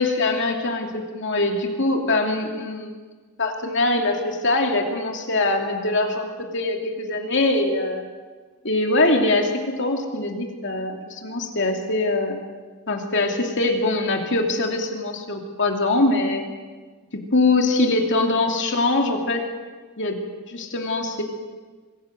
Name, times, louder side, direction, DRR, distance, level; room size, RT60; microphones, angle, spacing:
voice 1, 0.0-2.9 3.4-8.0 8.6-12.5 12.9-16.4 17.1-19.4 20.0-20.2 20.5-21.2, left 2 dB, 55° left, 2 dB, 2.7 m, -23 dB
24.0 x 17.0 x 7.8 m, 1.4 s
head